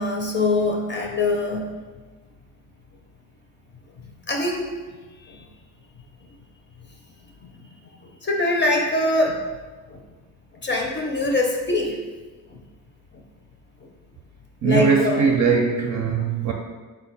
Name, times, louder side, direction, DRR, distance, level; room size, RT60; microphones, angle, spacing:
voice 1, 0.0-1.7 4.3-4.7 5.2-5.5 6.8-6.9 8.0-9.4 9.9-10.0 10.5-12.0 12.5-12.6 13.8-13.9 14.6-15.2, left 2 dB, 35° left, 1 dB, 0.5 m, -23 dB
voice 2, 14.6-16.5, right 5 dB, 55° right, 1 dB, 0.5 m, -20 dB
4.3 x 2.2 x 4.1 m, 1.3 s
cardioid pair, 100°, 34 cm